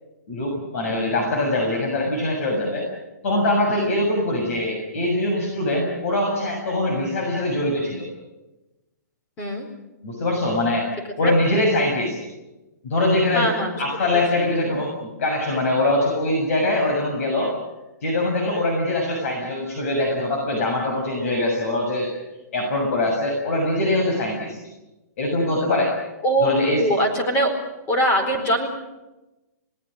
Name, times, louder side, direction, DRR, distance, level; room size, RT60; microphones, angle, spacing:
voice 1, 0.3-2.9 3.2-8.0 10.0-10.9 11.2-12.2 12.8-13.5 13.8-17.5 18.0-22.1 22.5-24.6 25.2-25.9 26.4-26.8, left 1 dB, 55° left, 1 dB, 7.0 m, -23 dB
voice 2, 13.3-13.7 14.1-14.8 26.2-27.5 27.9-28.7, right 1 dB, 20° left, 3 dB, 4.4 m, -23 dB
30.0 x 19.5 x 6.6 m, 1.0 s
hypercardioid pair, 165°, 9 cm